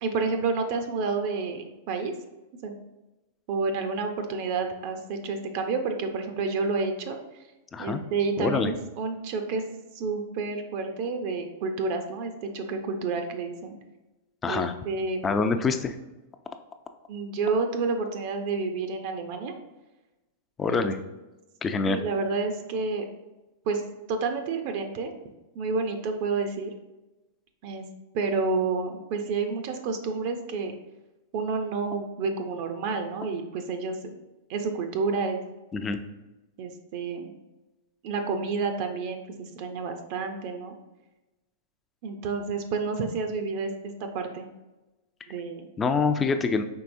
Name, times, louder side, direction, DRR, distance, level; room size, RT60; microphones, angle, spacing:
voice 1, 0.0-2.1 2.6-2.8 3.5-7.2 7.8-9.6 9.9-13.7 14.5-15.2 17.1-19.5 20.7-20.9 21.9-23.0 23.7-23.8 24.1-25.1 25.5-26.7 27.6-27.9 28.1-30.7 31.3-34.1 34.5-35.4 36.6-37.3 38.0-40.7 42.0-44.5 45.3-45.7, right 4 dB, 55° right, 5 dB, 0.5 m, -29 dB
voice 2, 8.4-8.7 14.4-14.7 15.2-16.0 20.6-21.0 21.6-22.0 35.7-36.0 45.8-46.6, left 4 dB, 20° left, 8 dB, 0.4 m, -25 dB
4.6 x 3.3 x 2.6 m, 1.1 s
hypercardioid pair, 125°, 0 cm